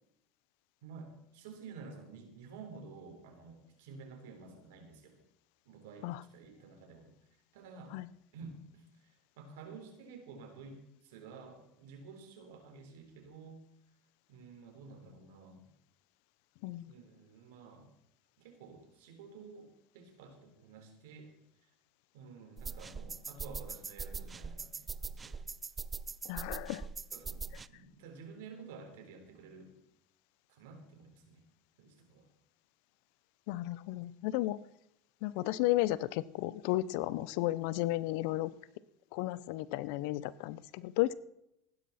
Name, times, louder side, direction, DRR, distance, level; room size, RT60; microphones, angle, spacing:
voice 1, 0.8-5.2 5.7-7.1 7.5-8.0 8.3-13.6 14.3-15.7 16.9-17.9 18.4-21.3 21.6-21.7 22.1-25.4 27.1-29.7 30.5-31.4 31.8-32.3, right 4 dB, 80° right, 4 dB, 3.9 m, -51 dB
sound 1, 22.6-27.7, right 5 dB, 25° right, 0.6 m, -42 dB
voice 2, 26.2-26.9 33.5-34.6 35.2-38.5 39.1-41.1, left 16 dB, 70° left, 19 dB, 0.7 m, -33 dB
16.0 x 12.0 x 4.3 m, 0.81 s
supercardioid pair, 95°, 0 cm